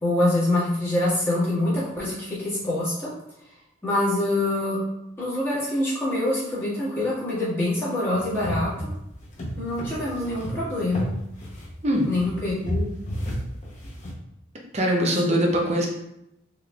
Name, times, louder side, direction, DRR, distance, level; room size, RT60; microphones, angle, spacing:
voice 1, 0.0-3.1 3.8-4.8 5.2-8.7 9.6-11.1 12.0-12.9 15.1-15.4, left 1 dB, 15° left, -10 dB, 1.5 m, -25 dB
sound 1, 8.1-14.1, equal, 40° left, 0.7 m, -32 dB
voice 2, 14.7-15.9, equal, 35° right, 0 dB, 0.6 m, -22 dB
3.7 x 3.2 x 2.3 m, 0.84 s
head